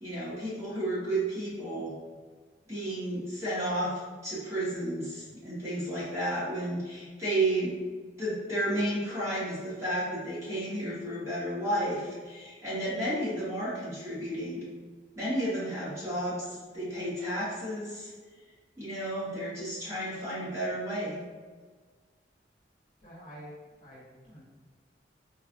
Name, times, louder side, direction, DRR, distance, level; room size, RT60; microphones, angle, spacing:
voice 1, 0.0-1.9 2.7-7.7 8.2-14.7 15.2-18.1 18.8-21.2, right 1 dB, 15° right, -10 dB, 1.0 m, -32 dB
voice 2, 23.0-24.4, equal, 45° left, -8 dB, 1.1 m, -48 dB
4.0 x 2.3 x 2.5 m, 1.4 s
head